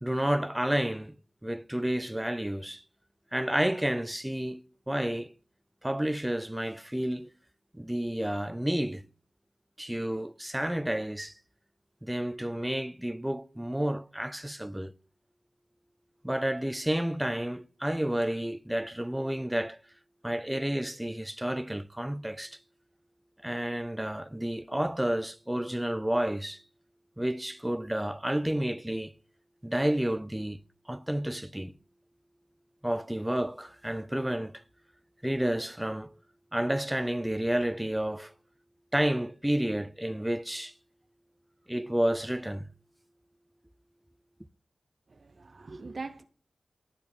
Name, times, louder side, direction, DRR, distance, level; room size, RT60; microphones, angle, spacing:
voice 1, 0.0-1.2 1.4-2.8 3.3-5.3 5.8-7.3 7.7-9.0 9.8-11.3 12.0-14.9 16.2-19.8 20.2-22.6 23.4-26.6 27.2-29.1 29.6-30.6 30.9-31.7 32.8-34.6 35.2-36.1 36.5-38.3 38.9-40.7 41.7-42.6, right 1 dB, 10° right, 0.5 m, -30 dB
voice 2, 45.1-46.2, right 3 dB, 55° right, 0.8 m, -42 dB
10.5 x 5.7 x 6.4 m
cardioid pair, 60°, 0 cm